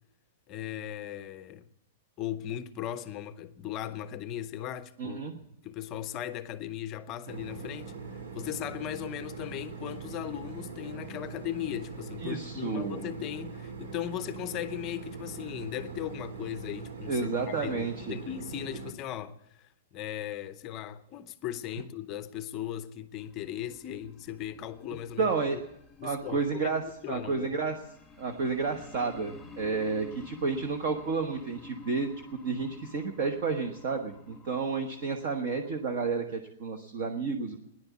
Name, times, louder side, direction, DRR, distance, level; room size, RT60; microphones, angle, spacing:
voice 1, 0.5-1.7 2.2-5.2 5.6-25.6 26.0-27.5, left 11 dB, 20° left, 0.6 m, -38 dB
voice 2, 5.0-5.4 12.2-13.1 17.1-18.2 25.2-25.6 26.0-27.8 28.2-32.1 32.4-37.6, right 4 dB, 35° right, 1.1 m, -31 dB
sound 1, 7.3-18.9, right 5 dB, 70° right, 2.6 m, -42 dB
sound 2, 23.2-36.1, left 4 dB, 5° left, 2.0 m, -51 dB
16.0 x 10.5 x 8.3 m
supercardioid pair, 180°, 0 cm